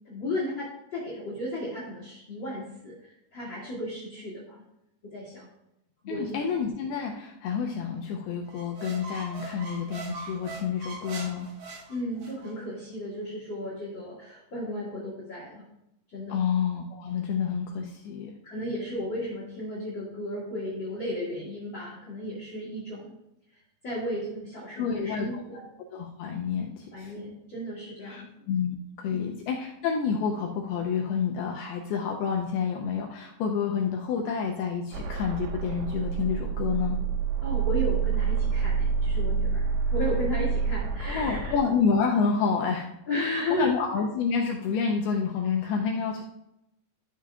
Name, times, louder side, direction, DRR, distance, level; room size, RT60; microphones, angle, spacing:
voice 1, 0.0-4.6 5.0-5.5 6.0-6.4 11.9-15.6 16.1-16.4 18.4-23.2 23.8-25.7 26.9-28.3 29.1-29.3 37.4-39.7 39.9-41.6 43.1-43.7, left 1 dB, 40° left, -6 dB, 1.8 m, -34 dB
voice 2, 6.1-11.5 16.3-18.3 24.8-25.7 25.9-27.1 28.0-37.0 41.0-42.9 43.2-46.3, left 6 dB, 90° left, 1 dB, 2.2 m, -29 dB
sound 1, 8.5-12.5, right 3 dB, 60° right, 2.8 m, -41 dB
sound 2, 34.9-41.6, right 6 dB, 85° right, 2.8 m, -27 dB
12.0 x 7.4 x 2.4 m, 0.85 s
omnidirectional pair, 5.2 m